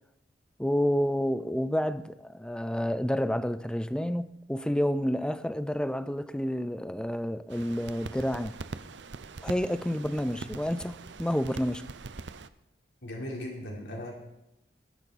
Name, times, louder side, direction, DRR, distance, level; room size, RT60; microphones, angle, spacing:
voice 1, 0.6-8.6 9.4-11.9, equal, 5° left, 0.5 m, -29 dB
sound 1, 7.5-12.5, right 4 dB, 80° right, 0.7 m, -42 dB
voice 2, 13.0-14.1, left 1 dB, 75° left, 4.1 m, -38 dB
21.5 x 10.5 x 4.3 m
head